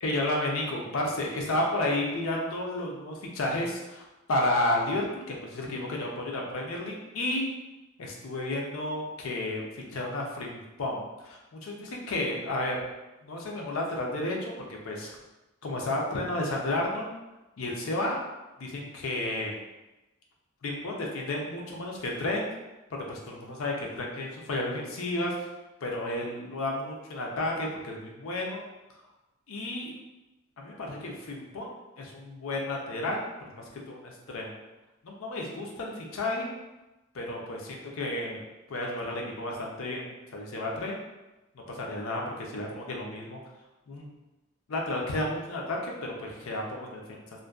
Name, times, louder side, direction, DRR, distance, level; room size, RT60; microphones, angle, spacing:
voice 1, 0.0-7.5 8.0-12.8 13.2-15.1 15.6-17.1 17.6-18.2 18.6-19.6 20.6-22.5 23.1-25.5 25.8-28.6 29.5-29.9 30.6-34.6 35.0-36.5 37.1-41.0 41.7-43.4 43.9-44.1 44.7-47.2, left 1 dB, 75° left, -1 dB, 0.5 m, -32 dB
2.5 x 2.1 x 2.3 m, 1.0 s
head